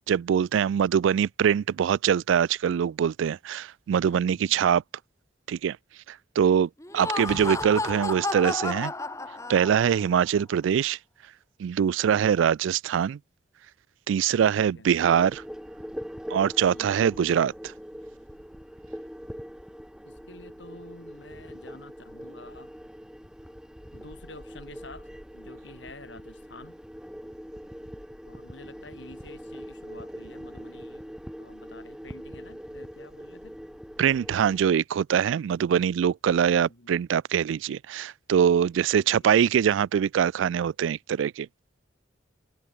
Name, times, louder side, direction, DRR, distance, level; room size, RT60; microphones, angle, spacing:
voice 1, 0.1-4.8 5.5-5.8 6.4-8.9 9.5-11.0 11.6-13.2 14.1-15.4 16.3-17.7 34.0-41.5, right 8 dB, 80° right, 0.3 m, -23 dB
voice 2, 4.0-4.6 12.1-12.4 14.5-15.0 16.7-17.0 20.0-22.7 23.9-26.8 28.2-31.1 31.4-33.6 35.7-35.9 36.5-37.1 39.0-39.5, left 2 dB, 70° left, 6.5 m, -49 dB
Laughter, 6.8-10.1, left 2 dB, 15° left, 1.7 m, -32 dB
sound 1, 15.0-34.6, equal, 5° right, 1.6 m, -42 dB
head